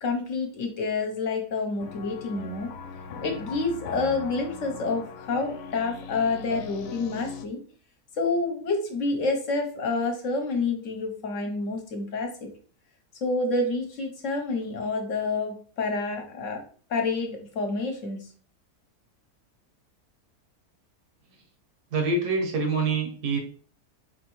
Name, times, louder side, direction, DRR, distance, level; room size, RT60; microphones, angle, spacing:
voice 1, 0.0-2.7 3.2-7.6 8.2-12.5 13.2-16.6 16.9-18.2, left 3 dB, 60° left, 3 dB, 1.1 m, -28 dB
sound 1, 1.8-7.5, left 6 dB, 80° left, 1.1 m, -40 dB
voice 2, 21.9-23.4, right 3 dB, 90° right, 3 dB, 1.5 m, -25 dB
4.3 x 3.3 x 3.0 m, 0.44 s
omnidirectional pair, 1.6 m